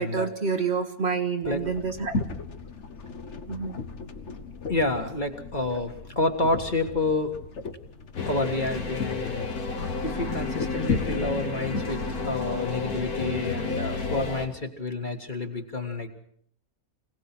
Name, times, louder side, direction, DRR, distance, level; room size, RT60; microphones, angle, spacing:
voice 1, 0.0-2.2 3.5-3.8, right 5 dB, 45° right, 6 dB, 1.6 m, -28 dB
sound 1, 1.4-13.0, left 4 dB, 55° left, 1.4 m, -36 dB
voice 2, 4.7-7.3 8.3-9.5 10.0-16.1, left 2 dB, 30° left, 4 dB, 1.9 m, -29 dB
sound 2, 8.1-14.5, left 4 dB, 75° left, 2.3 m, -31 dB
25.5 x 18.0 x 6.1 m, 0.65 s
omnidirectional pair, 1.6 m